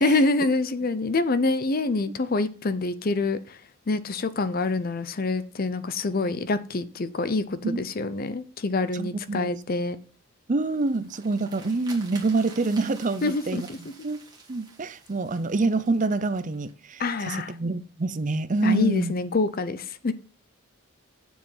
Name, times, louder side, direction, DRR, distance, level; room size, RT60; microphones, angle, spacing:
voice 1, 0.0-3.6 3.9-10.0 13.2-13.8 17.0-17.5 18.6-20.1, left 3 dB, 40° left, 0.6 m, -26 dB
voice 2, 8.9-9.5 10.5-13.7 14.0-14.2 14.5-19.1, right 3 dB, 35° right, 0.5 m, -26 dB
sound 1, 10.6-16.7, right 4 dB, 20° right, 2.0 m, -48 dB
7.4 x 7.1 x 5.6 m
head